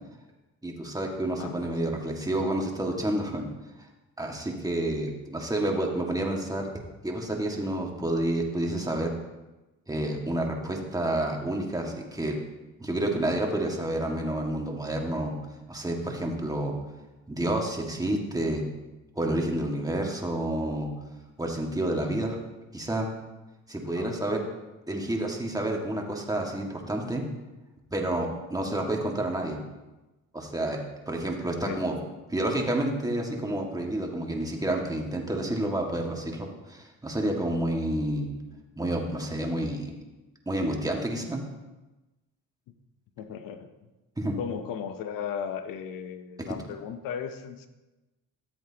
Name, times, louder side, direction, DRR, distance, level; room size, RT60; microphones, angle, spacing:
voice 1, 0.6-3.4 4.2-6.7 7.0-9.1 9.9-12.4 12.8-15.3 15.7-16.8 17.3-18.6 19.2-20.9 21.4-22.4 22.7-23.1 23.7-24.4 24.9-27.2 27.9-29.6 30.3-30.8 31.1-32.0 32.3-38.3 38.8-39.9 40.5-41.4 44.2-44.4, right 1 dB, 10° right, 0 dB, 1.9 m, -29 dB
voice 2, 43.2-43.7 44.4-47.7, left 7 dB, 80° left, 9 dB, 0.9 m, -36 dB
13.5 x 7.8 x 2.9 m, 1.1 s
cardioid pair, 75°, 33 cm